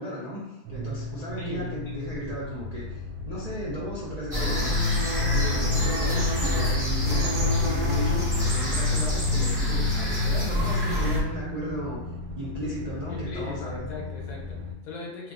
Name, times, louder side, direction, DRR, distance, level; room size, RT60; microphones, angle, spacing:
voice 1, 0.0-4.8 5.2-12.0 12.4-13.9, equal, 55° right, -8 dB, 0.4 m, -35 dB
sound 1, 0.7-14.7, equal, 85° right, 1.1 m, -36 dB
voice 2, 1.4-1.7 5.4-5.9 13.1-15.3, left 3 dB, 70° left, -2 dB, 1.2 m, -39 dB
sound 2, 4.3-11.2, left 2 dB, 20° right, 0.7 m, -25 dB
2.9 x 2.4 x 3.6 m, 1.1 s
omnidirectional pair, 1.6 m